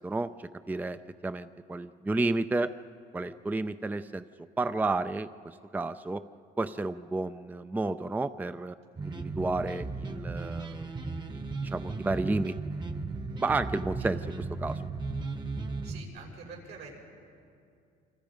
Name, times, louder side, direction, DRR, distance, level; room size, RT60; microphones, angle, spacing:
voice 1, 0.0-2.7 3.1-4.2 4.6-6.2 6.6-8.8 9.0-10.9 11.3-12.5 13.4-14.8, right 2 dB, 10° right, 12 dB, 0.5 m, -31 dB
sound 1, 9.0-16.0, right 3 dB, 25° right, 1.2 m, -36 dB
voice 2, 15.8-16.9, right 5 dB, 80° right, -1 dB, 6.5 m, -46 dB
28.0 x 25.0 x 5.2 m, 2.4 s
cardioid pair, 110°, 17 cm